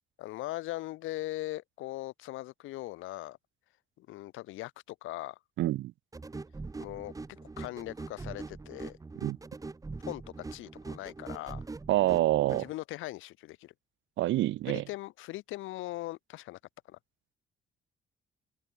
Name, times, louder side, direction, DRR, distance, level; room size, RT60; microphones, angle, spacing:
voice 1, 0.2-3.4 4.0-5.4 6.8-7.1 7.6-9.0 10.1-10.2 10.5-11.6 12.5-13.7 14.7-16.6 16.9-17.0, left 17 dB, 85° left, 0.7 m, -40 dB
voice 2, 5.6-5.9 9.2-9.4 11.9-12.6 14.2-14.8, right 15 dB, 75° right, 0.5 m, -26 dB
sound 1, 6.1-12.7, right 3 dB, 15° right, 0.8 m, -42 dB
cardioid pair, 90°, 20 cm